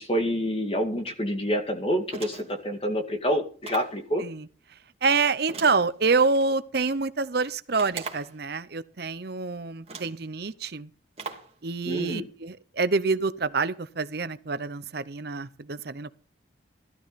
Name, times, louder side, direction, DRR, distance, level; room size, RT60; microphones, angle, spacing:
voice 1, 0.0-4.2 11.8-12.3, equal, 30° left, 2.2 m, -27 dB
sound 1, 2.1-2.6 3.6-4.0 5.5-6.5 7.8-8.4 9.3-9.4 9.9-10.2 11.2-11.5, right 4 dB, 30° right, 2.5 m, -39 dB
voice 2, 5.0-10.9 11.6-16.2, right 4 dB, 55° right, 0.7 m, -27 dB
16.0 x 12.5 x 4.1 m
head